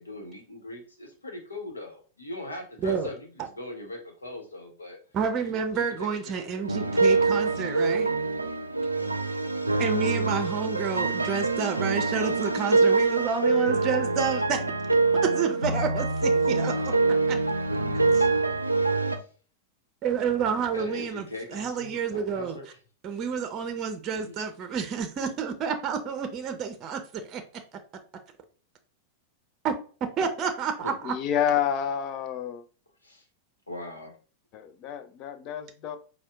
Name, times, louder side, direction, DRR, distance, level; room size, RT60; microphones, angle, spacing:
voice 1, 0.0-5.0 5.4-7.6 10.0-10.5 19.0-19.3 20.7-22.7 24.1-24.5 30.8-30.9 33.0-33.2 33.7-34.2, left 1 dB, 85° left, 1.0 m, -41 dB
voice 2, 5.1-8.1 9.8-14.6 15.2-16.9 17.3-17.4 17.9-18.2 20.0-21.3 21.5-22.6 23.0-27.4 29.6-29.8 30.2-31.1, right 6 dB, 35° right, 0.6 m, -29 dB
sound 1, 6.6-19.2, right 3 dB, 90° right, 0.4 m, -25 dB
voice 3, 31.0-32.6 34.5-36.0, left 9 dB, 40° left, 0.5 m, -29 dB
4.3 x 2.2 x 3.4 m
figure-of-eight pair, 90°, 0 cm